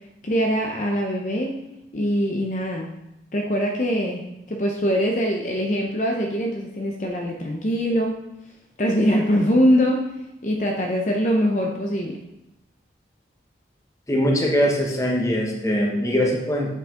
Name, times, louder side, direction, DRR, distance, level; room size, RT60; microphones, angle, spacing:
voice 1, 0.2-1.6 1.9-2.9 3.3-4.2 4.5-8.2 8.8-10.0 10.4-12.2, equal, 45° left, 1 dB, 0.6 m, -22 dB
voice 2, 14.1-16.7, equal, 20° left, -1 dB, 1.0 m, -22 dB
7.3 x 5.4 x 3.7 m, 0.88 s
head